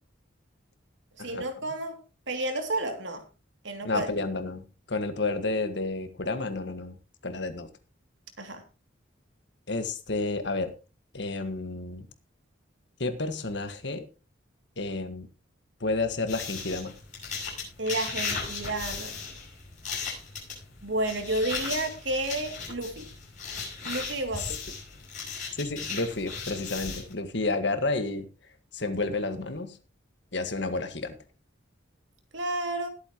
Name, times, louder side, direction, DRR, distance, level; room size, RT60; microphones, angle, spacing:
voice 1, 1.2-2.0 2.3-3.2 3.6-4.1 8.4-8.6 17.8-19.2 20.8-23.1 23.8-24.6 32.3-32.9, right 2 dB, 75° right, 5 dB, 2.7 m, -31 dB
voice 2, 3.8-7.0 7.2-7.7 9.7-10.7 11.1-12.1 13.0-14.0 14.8-15.3 15.8-16.9 24.4-24.5 25.6-28.3 28.7-29.8 30.3-31.2, left 3 dB, 65° left, 9 dB, 1.7 m, -30 dB
sound 1, 16.3-27.1, left 5 dB, 40° left, 7.4 m, -36 dB
20.5 x 8.7 x 3.0 m, 0.32 s
head